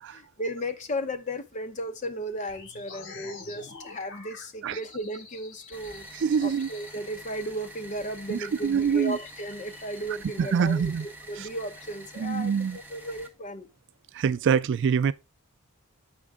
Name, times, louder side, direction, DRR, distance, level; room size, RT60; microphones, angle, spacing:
voice 1, 0.1-6.1 6.4-13.7, equal, 35° left, 0.8 m, -35 dB
sound 1, 2.5-6.9, left 4 dB, 60° left, 1.8 m, -46 dB
sound 2, 5.7-13.3, right 1 dB, 10° right, 1.5 m, -47 dB
voice 2, 6.1-6.7 8.3-9.2 10.4-11.1 11.4-11.5 12.2-12.8 14.1-15.1, right 6 dB, 55° right, 0.3 m, -25 dB
8.0 x 5.2 x 3.6 m
head